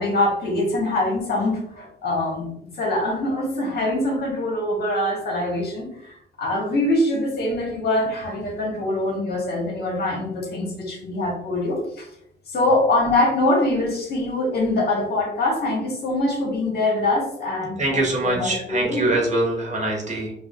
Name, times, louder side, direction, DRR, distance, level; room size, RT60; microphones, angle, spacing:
voice 1, 0.0-2.5 2.7-12.1 12.5-19.0, left 1 dB, 55° left, -2 dB, 1.4 m, -24 dB
voice 2, 17.8-20.3, right 2 dB, 35° right, -1 dB, 1.2 m, -23 dB
4.7 x 2.5 x 2.5 m, 0.76 s
cardioid pair, 90°, 20 cm